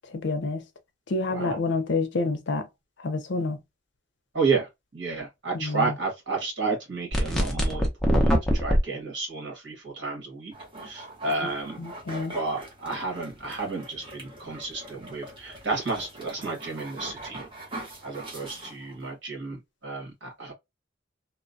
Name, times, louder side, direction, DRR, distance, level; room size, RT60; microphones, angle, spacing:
voice 1, 0.1-0.6 1.1-2.7 3.0-3.6 5.5-5.9 11.4-12.3, left 3 dB, 70° left, 0.5 m, -28 dB
voice 2, 4.3-10.5 10.8-11.9 12.3-17.4 18.0-19.6 19.8-20.5, right 4 dB, 75° right, 1.5 m, -31 dB
sound 1, 7.1-8.8, equal, ahead, 0.5 m, -22 dB
sound 2, 10.5-19.1, right 1 dB, 25° right, 0.9 m, -42 dB
2.9 x 2.1 x 2.5 m
head